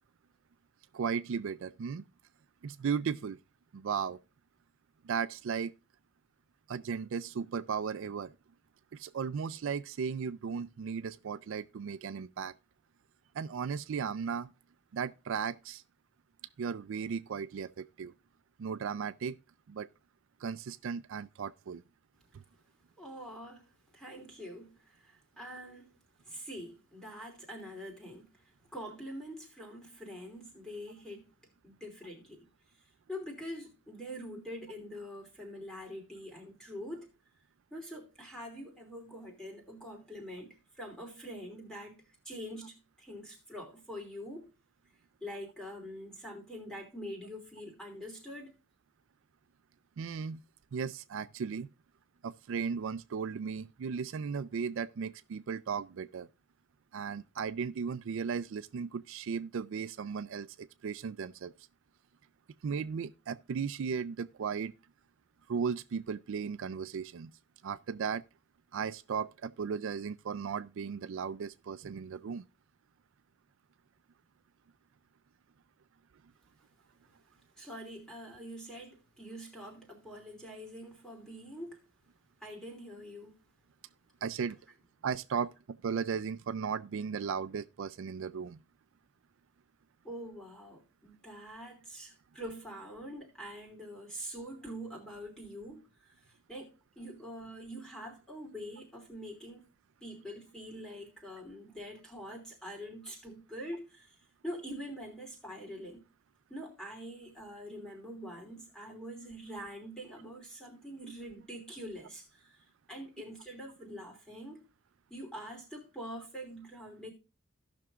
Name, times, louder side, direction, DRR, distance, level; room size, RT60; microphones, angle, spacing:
voice 1, 0.9-2.0 2.6-3.4 3.7-4.2 5.0-5.7 6.7-8.3 8.9-12.5 13.3-14.5 14.9-15.8 16.6-18.1 18.6-19.4 19.7-19.9 20.4-21.8 22.3-22.4 50.0-50.4 50.7-51.7 52.2-56.3 56.9-61.5 62.6-64.7 65.5-67.3 67.6-68.2 68.7-72.4 84.2-84.6 85.0-88.6, right 6 dB, 60° right, 0.4 m, -36 dB
voice 2, 23.0-23.6 23.9-25.9 26.2-31.3 31.6-32.5 33.1-37.1 37.7-44.5 45.2-48.6 77.6-81.8 82.4-83.4 85.3-85.4 90.0-96.1 96.5-99.6 100.0-104.2 104.4-106.0 106.5-114.6 115.1-117.1, equal, 5° left, 2.9 m, -45 dB
17.0 x 6.1 x 2.3 m
head